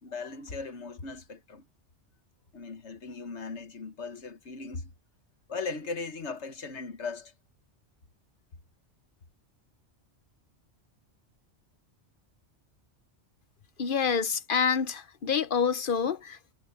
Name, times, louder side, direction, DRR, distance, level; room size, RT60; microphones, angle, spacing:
voice 1, 0.0-1.6 2.5-4.9 5.5-7.3, left 4 dB, 75° left, 1.7 m, -38 dB
voice 2, 13.8-16.5, left 6 dB, 50° left, 1.0 m, -27 dB
omnidirectional pair, 1.2 m